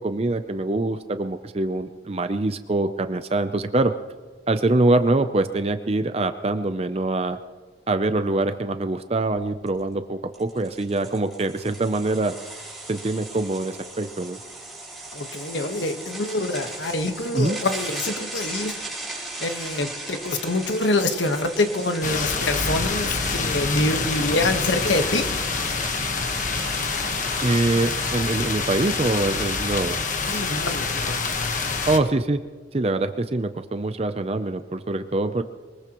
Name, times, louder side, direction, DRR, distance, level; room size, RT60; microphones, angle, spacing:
voice 1, 0.0-3.9 4.5-7.4 7.9-12.3 12.9-14.4 17.3-17.6 27.4-30.0 31.9-32.4 32.7-35.4, right 2 dB, 35° right, 9 dB, 0.5 m, -24 dB
sound 1, 9.2-9.3 9.7-9.8 10.3-28.1, right 2 dB, ahead, 6.1 m, -37 dB
voice 2, 15.1-18.8 19.4-25.3 30.2-31.2, left 2 dB, 85° left, 6 dB, 1.4 m, -25 dB
sound 2, 22.0-32.0, left 4 dB, 45° left, 1.3 m, -26 dB
23.0 x 20.5 x 3.1 m, 1.4 s
head